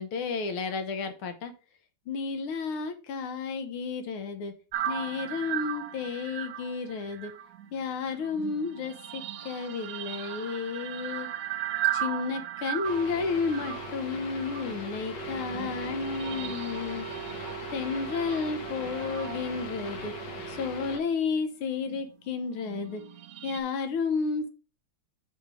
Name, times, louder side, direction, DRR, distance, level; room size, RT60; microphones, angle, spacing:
voice 1, 0.0-1.5 2.1-4.5 4.9-7.3 7.7-11.3 11.9-17.1 17.7-20.1 20.5-23.0 23.4-24.5, left 5 dB, 75° left, 8 dB, 1.8 m, -32 dB
sound 1, 4.7-21.2 21.8-23.6, right 12 dB, 70° right, 1.3 m, -38 dB
sound 2, 12.8-21.0, right 1 dB, 55° left, 1.8 m, -38 dB
5.5 x 4.4 x 6.1 m, 0.35 s
omnidirectional pair, 2.4 m